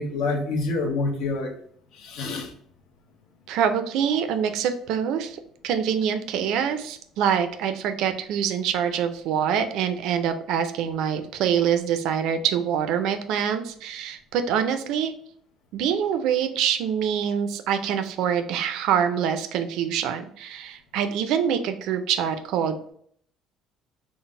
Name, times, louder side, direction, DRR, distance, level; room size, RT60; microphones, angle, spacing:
voice 1, 0.0-1.5 1.9-2.5, left 3 dB, 70° left, 3 dB, 0.7 m, -27 dB
voice 2, 3.5-15.1 15.7-22.9, right 8 dB, 70° right, 8 dB, 0.4 m, -25 dB
3.8 x 2.0 x 3.6 m, 0.63 s
cardioid pair, 165°, 0 cm